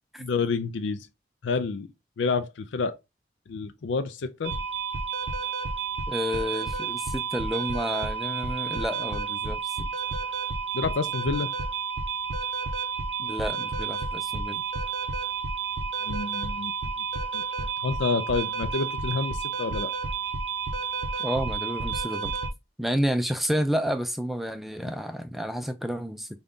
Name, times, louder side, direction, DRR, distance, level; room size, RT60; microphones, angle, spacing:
voice 1, 0.2-1.1 1.4-1.9 2.2-3.0 3.5-4.5 10.7-11.5 16.0-16.7 17.3-17.4 17.8-19.9, left 4 dB, 90° left, 0.4 m, -28 dB
sound 1, 4.4-22.5, right 4 dB, 90° right, 0.7 m, -31 dB
voice 2, 6.1-9.9 13.2-14.6 21.2-22.3 22.8-26.3, equal, ahead, 0.3 m, -30 dB
5.1 x 2.3 x 3.6 m
head